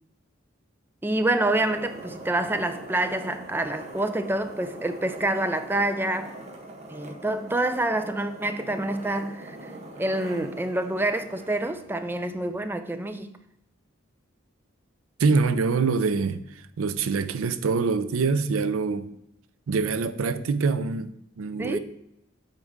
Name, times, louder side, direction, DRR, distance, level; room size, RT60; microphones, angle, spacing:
voice 1, 1.0-6.3 6.9-9.6 10.0-13.3 21.6-21.8, right 1 dB, 10° right, 0.3 m, -27 dB
sound 1, 1.1-12.6, right 1 dB, 30° right, 0.8 m, -42 dB
voice 2, 15.2-19.1 19.7-21.8, right 4 dB, 90° right, 0.5 m, -25 dB
7.9 x 4.1 x 3.7 m
head